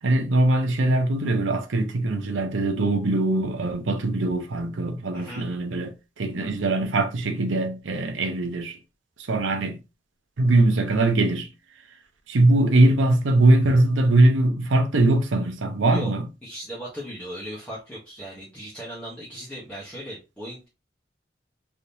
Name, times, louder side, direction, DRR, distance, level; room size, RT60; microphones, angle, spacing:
voice 1, 0.0-8.8 9.2-9.8 10.4-11.5 12.3-16.2, right 2 dB, 85° right, 0.7 m, -21 dB
voice 2, 5.1-5.4 15.9-16.1 16.4-20.7, equal, 5° left, 0.9 m, -37 dB
3.5 x 2.8 x 2.6 m
head